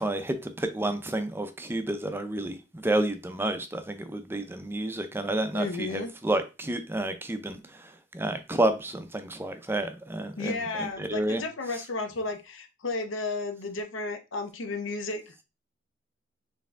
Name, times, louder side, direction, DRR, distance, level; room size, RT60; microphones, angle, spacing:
voice 1, 0.0-11.4, right 1 dB, 10° right, 0.5 m, -30 dB
voice 2, 5.5-6.1 10.4-15.4, left 3 dB, 70° left, 0.8 m, -33 dB
4.4 x 3.4 x 3.5 m
head